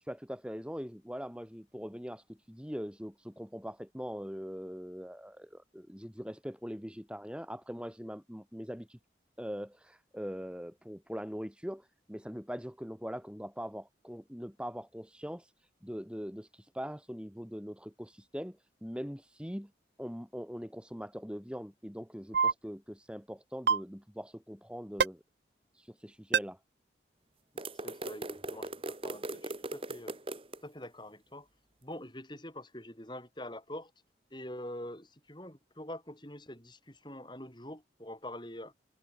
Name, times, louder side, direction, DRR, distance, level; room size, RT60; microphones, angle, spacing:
voice 1, 0.0-9.0 9.4-15.5 15.8-19.7 20.0-25.2 25.7-26.6, equal, 5° right, 4.0 m, -42 dB
sound 1, 22.3-22.5 23.7-23.8 25.0-25.1 26.3-26.4, right 6 dB, 65° right, 0.6 m, -24 dB
voice 2, 27.5-30.2 30.6-31.5 31.8-33.9 34.3-38.7, left 1 dB, 25° left, 7.8 m, -45 dB
sound 2, 27.6-30.6, right 2 dB, 30° right, 2.2 m, -39 dB
head